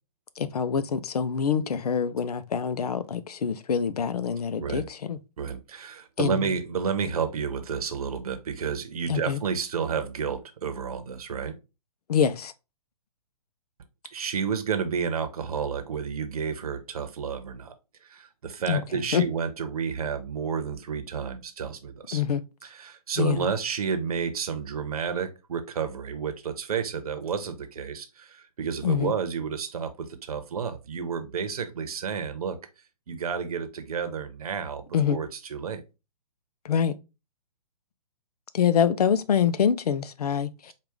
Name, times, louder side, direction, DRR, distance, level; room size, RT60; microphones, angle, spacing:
voice 1, 0.4-5.2 6.2-6.4 9.1-9.4 12.1-12.5 18.7-18.8 19.1-19.2 22.1-22.4 23.2-23.5 28.8-29.1 34.9-35.2 36.6-36.9 38.5-40.7, left 7 dB, 75° left, 0.6 m, -25 dB
voice 2, 5.4-11.5 14.1-17.7 18.0-22.2 22.6-32.6 33.1-35.8, right 6 dB, 70° right, 0.9 m, -31 dB
4.7 x 2.4 x 3.5 m
hypercardioid pair, 140°, 20 cm